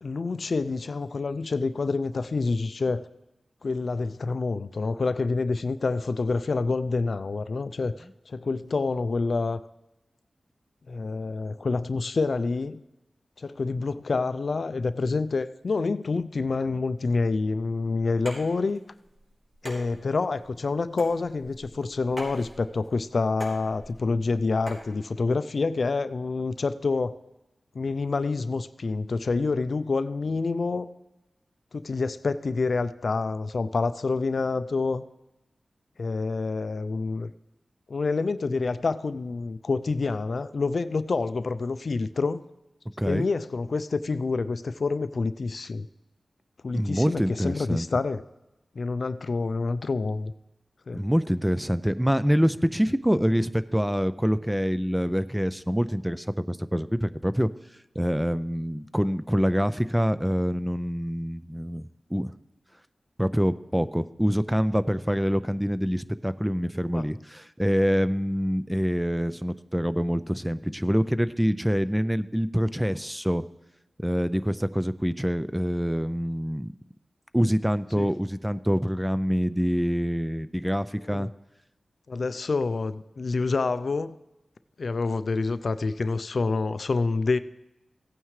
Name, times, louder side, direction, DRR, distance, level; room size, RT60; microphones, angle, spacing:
voice 1, 0.0-3.1 3.6-7.9 8.3-9.6 10.9-12.8 13.4-18.8 19.6-27.1 27.7-30.9 31.7-35.0 36.0-37.3 37.9-42.4 43.1-45.9 46.6-48.2 48.8-50.3 50.9-51.0 66.9-67.0 78.0-78.1 81.1-81.3 82.1-84.2 84.8-87.4, left 3 dB, 65° left, 13 dB, 0.4 m, -27 dB
sound 1, 18.1-24.9, equal, 40° right, 4.1 m, -44 dB
voice 2, 43.0-43.3 46.7-47.9 50.9-57.5 58.0-62.3 63.2-73.5 74.0-76.7 77.3-81.3, equal, 5° right, 14 dB, 0.4 m, -25 dB
16.0 x 9.0 x 3.2 m, 0.98 s
wide cardioid pair, 60°, 0 cm